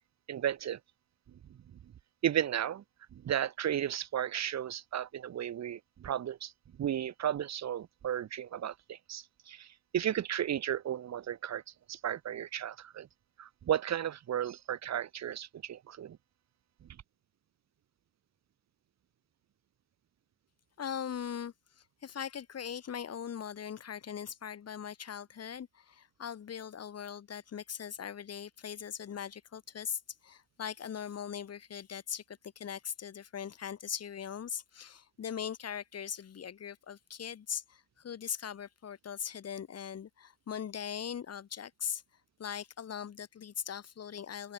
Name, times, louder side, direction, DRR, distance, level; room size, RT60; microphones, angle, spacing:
voice 1, 0.3-0.8 2.2-2.8 3.1-6.5 6.8-9.7 9.9-11.6 11.9-13.1 13.4-16.2, right 10 dB, 60° right, 2.5 m, -34 dB
voice 2, 20.8-42.0 42.4-44.5, left 8 dB, 55° left, 5.7 m, -40 dB
open air
cardioid pair, 90°, 30 cm